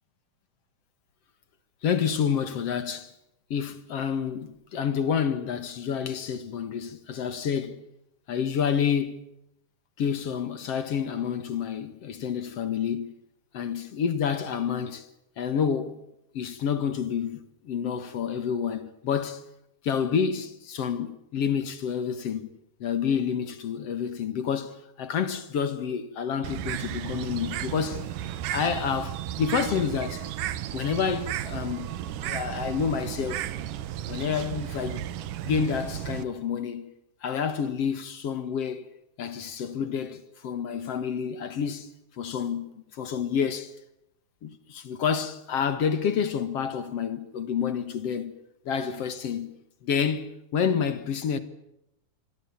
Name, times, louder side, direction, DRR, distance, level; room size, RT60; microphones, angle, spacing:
voice 1, 1.8-3.1 3.5-7.8 8.3-9.2 10.0-13.1 13.5-15.1 15.4-16.0 16.3-19.4 19.8-22.5 22.8-28.0 28.5-30.3 30.7-32.0 32.2-33.5 34.1-35.0 35.4-36.9 37.2-38.8 39.2-41.9 42.2-43.7 44.4-48.3 48.7-49.5 49.8-51.4, left 7 dB, 55° left, 2.4 m, -29 dB
Bird, 26.4-36.2, right 12 dB, 80° right, 2.8 m, -34 dB
27.5 x 23.5 x 7.3 m
omnidirectional pair, 3.8 m